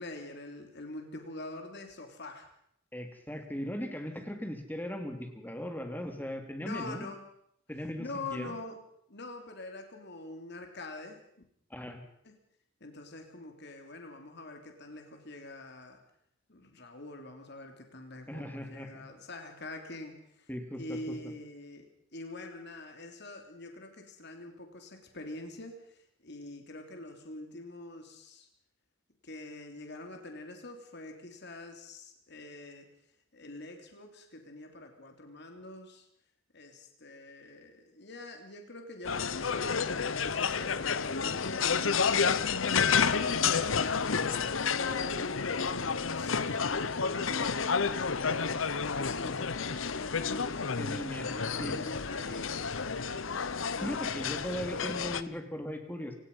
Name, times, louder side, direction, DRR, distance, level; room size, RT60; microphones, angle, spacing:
voice 1, 0.0-2.5 6.6-7.2 8.0-8.8 9.1-11.2 12.2-12.3 12.8-16.0 16.5-20.5 20.7-21.8 22.1-28.5 29.2-32.9 33.3-36.0 36.5-41.9 42.7-44.2 44.8-48.4 48.9-50.7 51.2-53.4, left 2 dB, 60° left, 4 dB, 3.2 m, -44 dB
voice 2, 2.9-7.1 7.7-8.5 11.7-12.0 18.3-19.0 20.5-21.3 44.2-44.4 50.8-51.3 51.6-51.8 53.8-56.2, equal, 10° left, 5 dB, 2.9 m, -38 dB
sound 1, 39.0-55.2, left 6 dB, 85° left, 1.0 m, -30 dB
28.0 x 18.0 x 5.6 m, 0.72 s
head